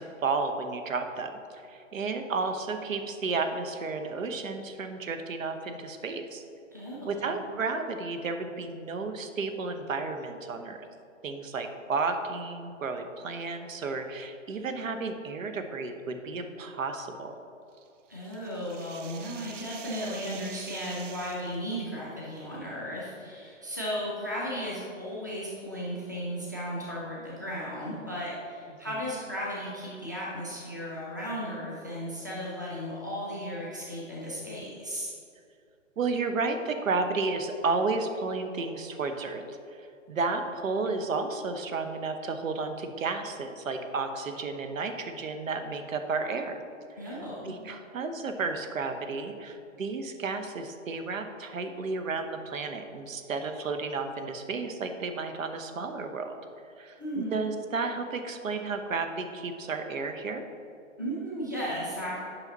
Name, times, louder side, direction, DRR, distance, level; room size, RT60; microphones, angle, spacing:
voice 1, 0.0-6.4 7.1-10.9 11.2-17.4 28.9-29.0 36.0-46.6 47.0-56.4 56.8-60.4, right 4 dB, 90° right, 7 dB, 1.0 m, -32 dB
voice 2, 6.7-7.3 18.1-35.1 47.0-47.5 57.0-57.3 61.0-62.2, equal, 15° right, -6 dB, 0.5 m, -35 dB
sound 1, 17.7-21.5, right 8 dB, 70° right, 0.6 m, -46 dB
8.9 x 5.7 x 4.0 m, 2.5 s
hypercardioid pair, 175°, 39 cm